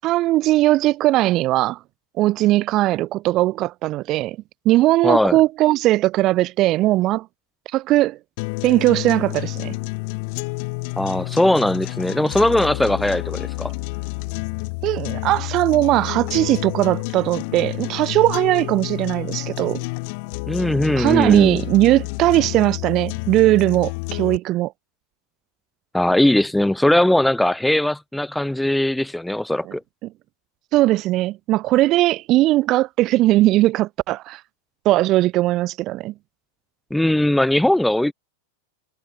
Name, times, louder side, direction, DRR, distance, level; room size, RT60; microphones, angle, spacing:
voice 1, 0.0-1.8 2.2-4.4 4.7-7.3 7.7-8.2 8.6-9.7 14.8-19.8 21.0-24.7 29.7-29.8 30.7-34.4 34.8-36.1, right 16 dB, 40° right, 0.5 m, -19 dB
voice 2, 5.0-5.4 11.0-13.7 20.5-21.6 25.9-29.8 36.9-38.1, left 1 dB, 5° left, 0.8 m, -19 dB
sound 1, 8.4-24.4, left 31 dB, 55° left, 0.5 m, -29 dB
hypercardioid pair, 125°, 0 cm